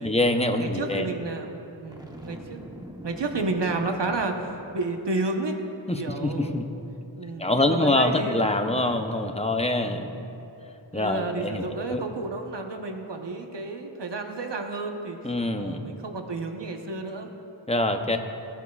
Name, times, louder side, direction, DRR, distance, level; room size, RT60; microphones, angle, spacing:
voice 1, 0.0-1.1 5.9-6.7 7.4-10.1 10.9-12.0 15.2-15.8 17.7-18.2, left 2 dB, 15° left, 6 dB, 0.7 m, -25 dB
voice 2, 0.6-1.5 1.8-2.6 3.0-5.6 6.0-6.7 7.2-8.4 8.7-8.9 9.8-10.1 10.9-17.3, right 3 dB, 60° right, 4 dB, 1.1 m, -31 dB
Boom, 1.9-5.1, right 1 dB, 10° right, 1.0 m, -43 dB
17.5 x 11.0 x 2.4 m, 2.9 s
wide cardioid pair, 50°, 46 cm